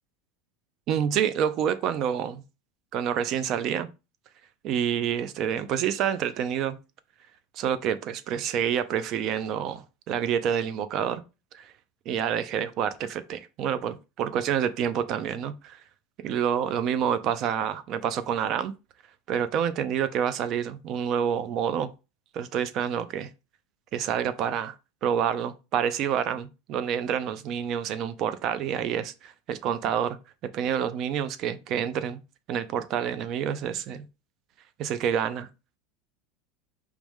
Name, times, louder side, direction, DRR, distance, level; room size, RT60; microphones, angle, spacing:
voice 1, 0.9-2.4 2.9-3.9 4.6-6.8 7.5-11.2 11.5-11.7 12.1-15.8 16.2-18.7 19.3-21.9 22.3-23.3 23.9-24.8 25.0-30.2 30.4-32.2 32.5-34.1 34.8-35.5, right 8 dB, 40° right, 0.5 m, -28 dB
4.8 x 3.1 x 3.5 m
supercardioid pair, 155°, 0 cm